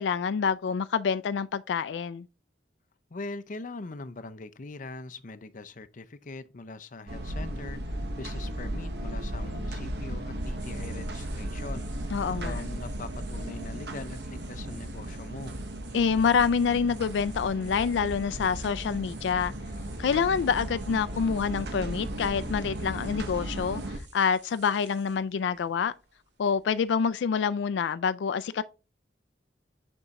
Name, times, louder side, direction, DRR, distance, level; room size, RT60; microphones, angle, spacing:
voice 1, 0.0-2.3 12.1-12.6 15.9-19.5 20.0-25.9 26.4-28.6, left 6 dB, 90° left, 0.4 m, -27 dB
voice 2, 3.1-15.6, left 3 dB, 45° left, 0.6 m, -42 dB
sound 1, 7.1-24.0, right 1 dB, 65° right, 1.1 m, -36 dB
sound 2, 8.9-27.2, right 5 dB, 90° right, 1.9 m, -55 dB
6.9 x 5.4 x 3.6 m
head